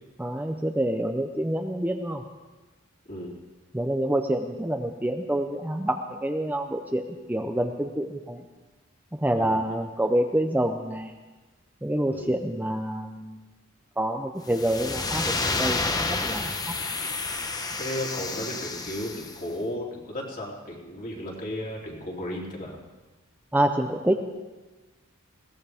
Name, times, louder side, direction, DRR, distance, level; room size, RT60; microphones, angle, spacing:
voice 1, 0.2-2.2 3.7-7.0 7.3-8.4 9.1-11.1 11.8-13.4 14.0-16.7 23.5-24.1, right 1 dB, 10° right, 4 dB, 0.6 m, -27 dB
voice 2, 9.3-9.8 12.1-12.3 17.8-22.8, left 1 dB, 40° left, -2 dB, 3.3 m, -34 dB
sound 1, 14.5-19.4, left 3 dB, 20° left, 0.9 m, -30 dB
21.0 x 17.5 x 3.5 m, 1.2 s
head